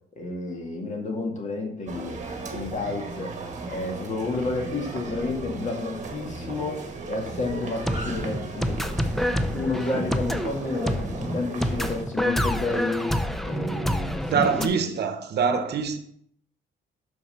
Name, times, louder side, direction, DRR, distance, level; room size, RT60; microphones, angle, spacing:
voice 1, 0.2-2.2 2.5-3.3 3.7-8.8 9.5-14.8, left 3 dB, 35° left, 2.0 m, -31 dB
sound 1, 1.9-12.1, right 3 dB, 35° right, 1.5 m, -36 dB
sound 2, 7.6-14.7, equal, ahead, 0.6 m, -28 dB
voice 2, 14.3-16.0, right 6 dB, 55° right, 1.0 m, -24 dB
6.3 x 5.7 x 5.6 m
cardioid pair, 110°, 20 cm